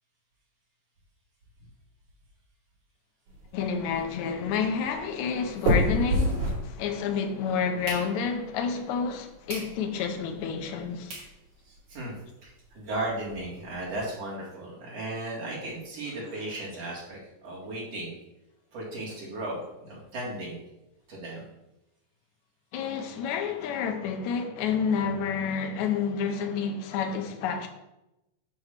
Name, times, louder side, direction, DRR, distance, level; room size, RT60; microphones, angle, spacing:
sound 1, 3.3-7.2 7.6-8.6 9.1-9.2 9.5-9.7 10.1-10.2 10.8-10.9 11.1-11.3 11.7-11.8 12.0-12.1 12.4-12.5 12.8-14.0, equal, 70° right, 4.0 m, -30 dB
voice 1, 3.5-11.1 22.7-27.7, left 6 dB, 75° left, 1.9 m, -29 dB
voice 2, 11.6-12.1 12.4-18.1 18.7-20.6 21.1-21.4, right 1 dB, 50° right, 2.8 m, -36 dB
8.6 x 3.1 x 6.5 m
omnidirectional pair, 4.0 m